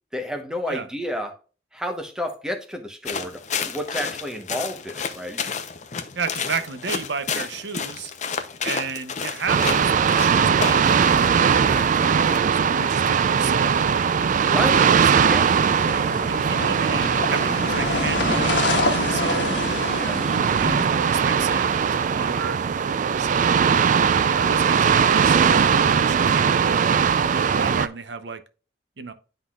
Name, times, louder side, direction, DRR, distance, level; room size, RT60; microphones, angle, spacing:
voice 1, 0.1-1.4 1.7-5.5 14.4-14.9 15.2-15.7 19.9-20.4, equal, 5° right, 1.0 m, -31 dB
sound 1, 3.1-12.4, left 6 dB, 40° left, 0.6 m, -31 dB
voice 2, 6.2-8.1 8.6-13.7 14.4-15.0 16.0-18.5 19.1-19.9 20.6-22.6 23.2-23.6 24.2-28.4 29.0-29.1, right 5 dB, 70° right, 0.7 m, -32 dB
sound 2, 9.5-27.9, right 7 dB, 45° right, 0.3 m, -20 dB
sound 3, 14.8-21.8, left 3 dB, 75° left, 1.3 m, -28 dB
11.5 x 3.9 x 2.3 m
head